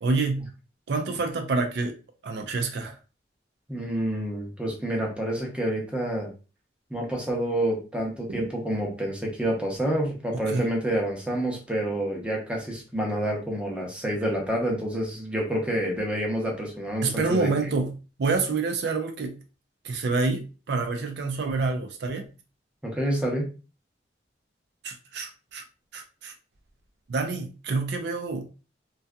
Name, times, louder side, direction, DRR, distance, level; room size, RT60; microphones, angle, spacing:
voice 1, 0.0-0.5 0.9-2.0 2.2-3.0 8.3-8.4 10.5-10.6 17.0-17.9 18.2-19.4 19.8-22.3 24.8-25.6 25.9-26.3 27.1-28.5, right 3 dB, 65° right, 0.4 m, -27 dB
voice 2, 3.7-6.3 6.9-17.5 22.8-23.5, right 1 dB, 5° right, 0.6 m, -28 dB
2.6 x 2.3 x 2.2 m
head